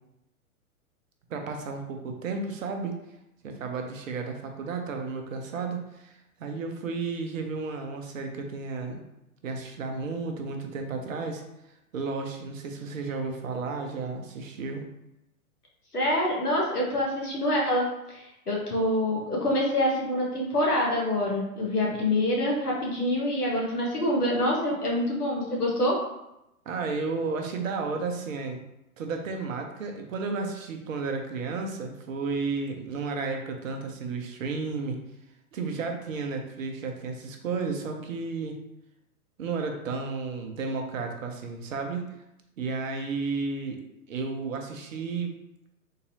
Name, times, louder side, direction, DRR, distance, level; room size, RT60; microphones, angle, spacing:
voice 1, 1.3-2.9 3.4-9.1 9.4-11.4 11.9-14.9 26.7-28.6 29.0-35.0 35.5-38.6 39.4-42.0 42.6-43.8 44.1-45.4, right 4 dB, 60° right, 4 dB, 0.7 m, -33 dB
voice 2, 15.9-17.9 18.1-26.0, left 1 dB, 85° left, -3 dB, 1.3 m, -26 dB
3.8 x 2.7 x 2.7 m, 0.88 s
figure-of-eight pair, 110°, 44 cm